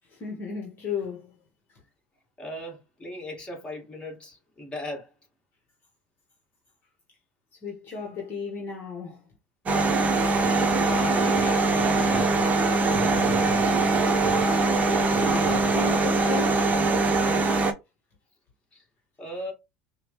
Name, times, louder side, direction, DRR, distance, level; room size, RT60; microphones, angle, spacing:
voice 1, 0.1-1.3 7.5-9.3 14.8-16.8, left 5 dB, 40° left, 1.3 m, -35 dB
voice 2, 2.4-5.1 10.0-12.3 18.7-18.8 19.2-19.5, left 1 dB, 15° left, 2.0 m, -38 dB
sound 1, 9.7-17.7, right 3 dB, 30° right, 0.9 m, -22 dB
5.1 x 2.3 x 3.1 m
supercardioid pair, 115°, 5 cm